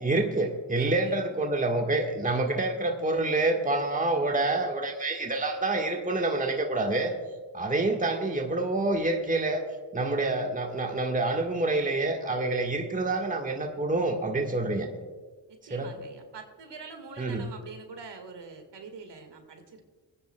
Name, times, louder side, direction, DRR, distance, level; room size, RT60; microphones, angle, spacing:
voice 1, 0.0-7.2 7.5-9.6 9.9-14.9 15.7-15.9 17.2-17.5, right 2 dB, 15° right, 4 dB, 1.4 m, -27 dB
voice 2, 0.8-1.1 15.5-19.8, right 4 dB, 60° right, 6 dB, 1.8 m, -45 dB
26.0 x 9.4 x 2.2 m, 1.5 s
supercardioid pair, 45°, 48 cm